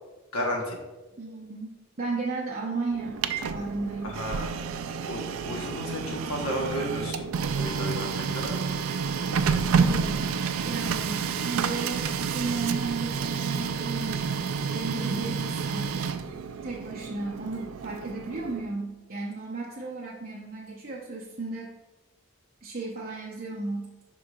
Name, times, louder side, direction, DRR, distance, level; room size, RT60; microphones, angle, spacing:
voice 1, 0.3-0.8 4.0-4.5 5.1-8.6, equal, 90° left, 0 dB, 1.1 m, -33 dB
voice 2, 1.2-4.2 9.8-10.3 10.7-16.0 16.6-21.7 22.6-23.9, right 3 dB, 40° right, -5 dB, 0.7 m, -34 dB
Printer, 2.9-18.7, right 6 dB, 80° right, 0.4 m, -29 dB
11.0 x 3.8 x 2.3 m, 1.2 s
head